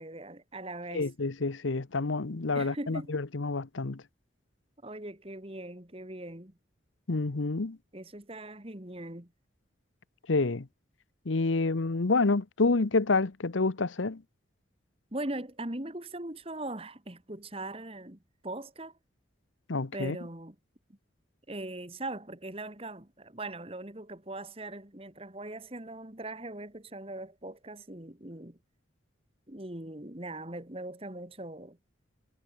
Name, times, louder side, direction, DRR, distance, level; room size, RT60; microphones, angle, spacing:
voice 1, 0.0-1.1 2.5-3.1 4.8-6.6 7.9-9.3 15.1-18.9 19.9-20.6 20.9-21.0 21.5-28.6 29.5-31.8, right 2 dB, 30° right, 2.0 m, -40 dB
voice 2, 0.9-4.0 7.1-7.8 10.3-10.7 11.3-14.2 19.7-20.2, left 3 dB, 80° left, 0.9 m, -28 dB
head